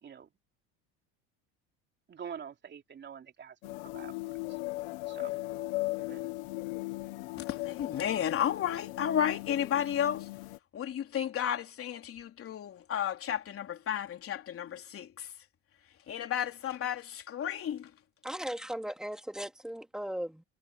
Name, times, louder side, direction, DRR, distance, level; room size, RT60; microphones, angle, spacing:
voice 1, 2.1-4.6 5.1-5.4 5.9-6.2, right 7 dB, 35° right, 3.2 m, -46 dB
sound 1, 3.6-10.6, left 22 dB, 80° left, 1.4 m, -38 dB
voice 2, 7.5-10.3 10.7-15.3 16.1-17.9, left 9 dB, 40° left, 3.6 m, -32 dB
voice 3, 18.2-20.4, equal, ahead, 2.6 m, -37 dB
supercardioid pair, 105°, 33 cm